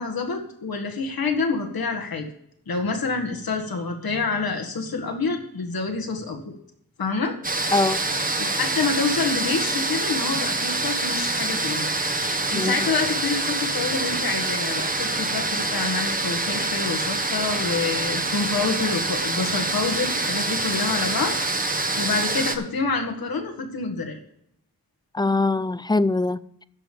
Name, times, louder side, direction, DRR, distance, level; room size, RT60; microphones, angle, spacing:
voice 1, 0.0-2.3 2.7-6.5 7.0-7.3 8.4-11.9 12.5-24.2, left 4 dB, 85° left, 1.9 m, -27 dB
sound 1, 7.4-22.6, right 2 dB, 25° right, 1.1 m, -26 dB
voice 2, 25.1-26.7, left 3 dB, 15° left, 0.3 m, -22 dB
13.0 x 5.2 x 7.0 m
wide cardioid pair, 90°, 35 cm